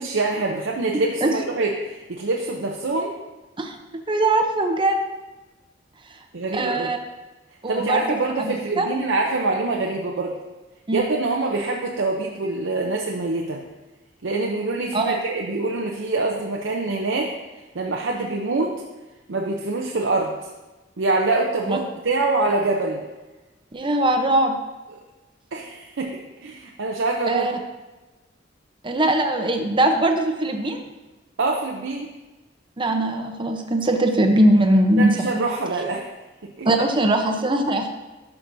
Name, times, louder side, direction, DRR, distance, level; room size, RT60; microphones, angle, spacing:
voice 1, 0.0-3.1 6.3-6.9 7.7-10.3 10.9-13.6 14.2-17.3 17.7-18.8 19.3-20.3 21.0-23.0 25.5-27.6 31.4-32.1 35.0-36.1 36.6-36.7, right 3 dB, 75° right, 0 dB, 0.6 m, -25 dB
voice 2, 4.1-5.0 6.5-7.0 7.6-8.9 10.9-11.1 14.9-15.2 21.7-21.8 23.7-24.6 27.3-27.5 28.8-30.8 32.8-35.4 36.6-37.9, right 1 dB, 25° right, 4 dB, 0.7 m, -21 dB
11.5 x 5.9 x 2.7 m, 1.1 s
head